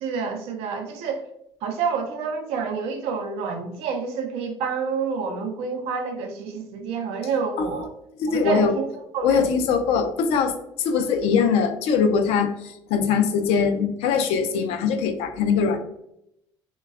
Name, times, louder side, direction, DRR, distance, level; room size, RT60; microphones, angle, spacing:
voice 1, 0.0-1.2 1.6-7.9 8.3-8.9 9.1-9.5 11.5-11.6, right 5 dB, 70° right, 4 dB, 0.5 m, -28 dB
voice 2, 8.2-8.7 9.2-15.8, left 6 dB, 70° left, 7 dB, 0.4 m, -22 dB
3.1 x 2.2 x 2.3 m, 0.78 s
hypercardioid pair, 70°, 11 cm